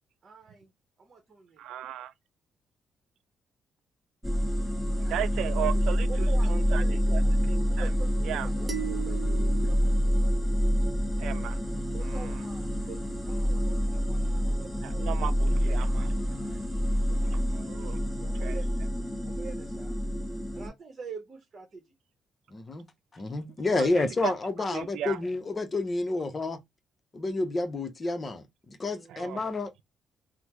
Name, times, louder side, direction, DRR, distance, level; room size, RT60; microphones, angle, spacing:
voice 1, 0.2-0.7 1.0-1.7 5.0-7.4 7.7-10.3 11.9-15.3 15.6-16.6 18.2-18.7 19.2-19.9 20.5-21.8 28.9-29.4, right 5 dB, 45° right, 0.9 m, -46 dB
voice 2, 1.6-2.1 5.1-6.1 6.5-6.8 7.1-7.2 7.5-7.9 8.3-8.5 11.2-11.6 14.8-16.1 17.5-18.0 18.4-18.6 23.7-23.9 24.2-24.3 24.7-25.2 29.1-29.4, right 12 dB, 80° right, 0.3 m, -35 dB
sound 1, 4.2-20.7, equal, ahead, 1.3 m, -27 dB
sound 2, 8.7-11.1, right 11 dB, 20° right, 1.1 m, -39 dB
voice 3, 22.5-22.9 23.1-26.6 27.1-29.7, left 2 dB, 30° left, 0.7 m, -30 dB
3.3 x 2.1 x 3.0 m
cardioid pair, 90°, 0 cm